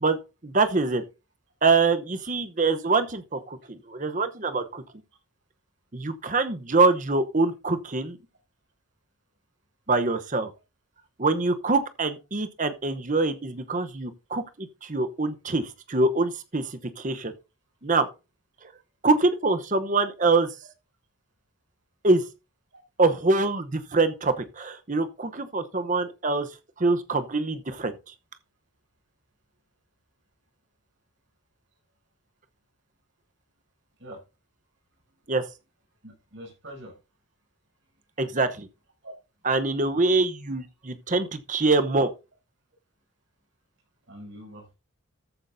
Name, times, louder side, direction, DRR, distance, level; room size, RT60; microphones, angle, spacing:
voice 1, 0.4-1.0 1.6-4.8 5.9-8.2 9.9-10.5 11.2-17.3 17.8-18.1 18.6-18.7 19.0-20.5 22.0-22.2 23.0-26.5 26.8-28.1 35.3-35.5 38.2-38.7 39.4-42.1, right 3 dB, 35° right, 0.9 m, -24 dB
voice 2, 36.0-37.0 39.0-39.1 44.1-44.7, equal, 55° right, 7.3 m, -44 dB
14.0 x 9.6 x 2.7 m
head